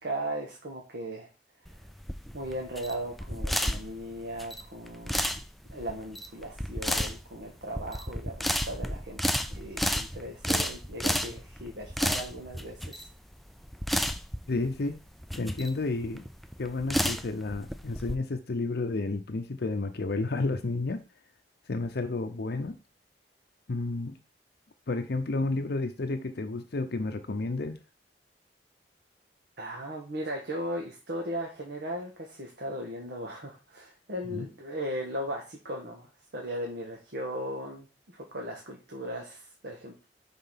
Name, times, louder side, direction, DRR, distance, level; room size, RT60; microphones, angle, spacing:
voice 1, 0.0-1.3 2.3-5.3 5.7-13.1 29.6-40.1, equal, 65° right, 0 dB, 1.4 m, -37 dB
sound 1, 1.6-18.1, equal, ahead, 0.4 m, -32 dB
voice 2, 14.5-15.0 15.4-16.2 16.6-21.0 21.7-22.8 23.7-24.2 24.9-27.8 34.3-34.5, left 3 dB, 65° left, 7 dB, 0.6 m, -31 dB
5.7 x 3.8 x 5.7 m, 0.32 s
head